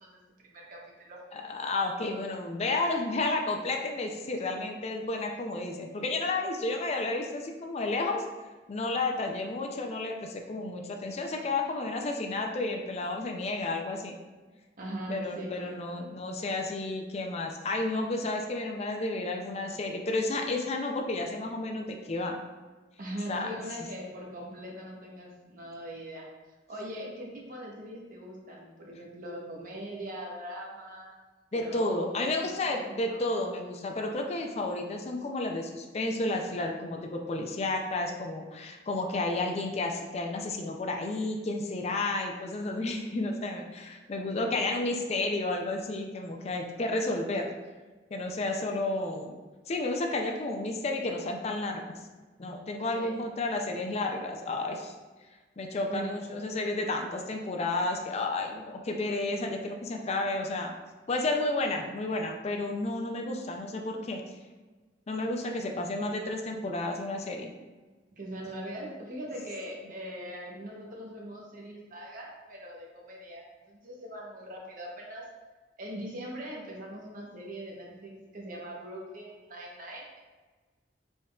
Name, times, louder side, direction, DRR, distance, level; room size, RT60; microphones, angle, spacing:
voice 1, 0.0-1.2 14.8-16.4 23.0-26.3 26.7-31.1 31.5-33.2 52.9-53.2 55.9-56.2 68.1-75.3 75.8-80.2, equal, 50° right, -2 dB, 1.0 m, -41 dB
voice 2, 1.3-8.2 8.7-14.2 15.1-22.4 23.3-23.5 31.5-47.5 48.1-49.4 49.7-51.9 52.4-54.9 55.6-60.7 61.1-64.2 65.1-67.5, left 2 dB, 35° left, 2 dB, 0.4 m, -31 dB
5.1 x 3.6 x 2.4 m, 1.3 s
head